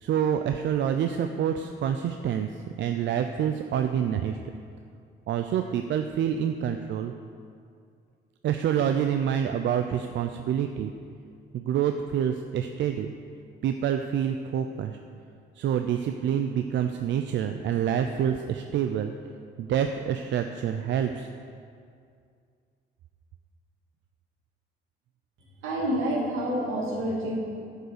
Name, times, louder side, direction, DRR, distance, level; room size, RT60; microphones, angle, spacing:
voice 1, 0.0-2.5 2.8-4.4 5.3-7.1 8.4-10.9 11.5-13.1 13.6-15.0 15.6-19.1 19.6-21.3, right 9 dB, 70° right, 7 dB, 0.5 m, -27 dB
voice 2, 25.6-27.4, equal, 85° right, -4 dB, 2.5 m, -28 dB
9.8 x 5.5 x 6.6 m, 2.3 s
cardioid pair, 90°, 20 cm